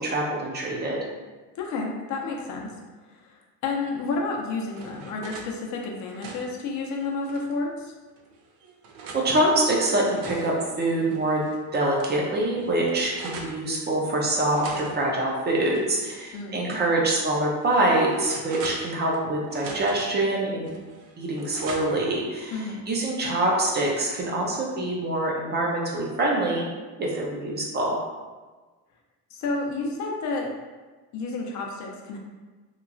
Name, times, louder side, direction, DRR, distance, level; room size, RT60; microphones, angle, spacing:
voice 1, 0.0-1.0 9.1-11.4 11.7-20.6 21.2-26.7 27.0-28.0, right 1 dB, 30° right, -3 dB, 0.5 m, -25 dB
voice 2, 1.6-2.7 3.1-3.3 3.6-7.9 16.3-16.8 22.5-22.8 29.3-30.5 31.1-32.2, left 3 dB, 55° left, 0 dB, 0.5 m, -30 dB
sound 1, 4.2-5.5 5.9-7.6 8.2-9.3 9.8-11.6 12.0-12.1 12.3-13.6 14.5-16.3 16.6-16.8 17.4-19.2 19.5-20.2 20.6-22.1, right 3 dB, 90° right, 0.5 m, -41 dB
2.9 x 2.3 x 2.5 m, 1.3 s
cardioid pair, 135°, 34 cm